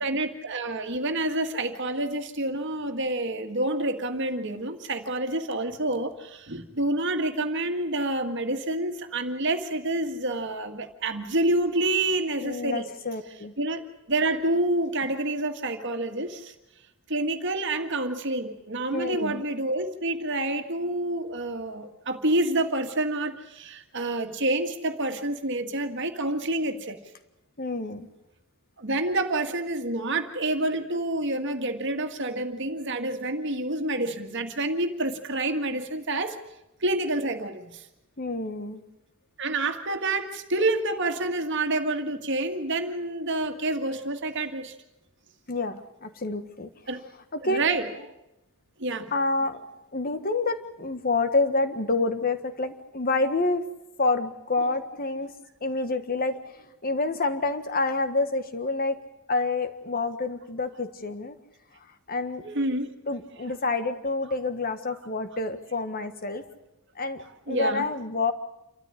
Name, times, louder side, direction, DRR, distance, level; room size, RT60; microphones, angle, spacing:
voice 1, 0.0-12.9 13.6-16.5 17.1-27.0 28.8-36.4 36.8-37.9 39.4-44.8 46.9-47.0 47.4-47.9 48.8-49.1 54.6-54.8 62.4-62.9 67.5-67.9, right 2 dB, 55° right, 6 dB, 1.9 m, -28 dB
voice 2, 12.4-13.5 18.9-19.4 27.6-28.1 38.2-38.8 45.5-46.7 47.3-47.6 49.1-49.6 49.9-53.6 54.0-55.3 55.6-56.4 56.8-59.0 59.3-61.3 62.1-62.4 63.1-66.4 66.9-68.3, left 3 dB, 40° left, 10 dB, 1.6 m, -28 dB
27.5 x 13.5 x 9.9 m, 0.94 s
head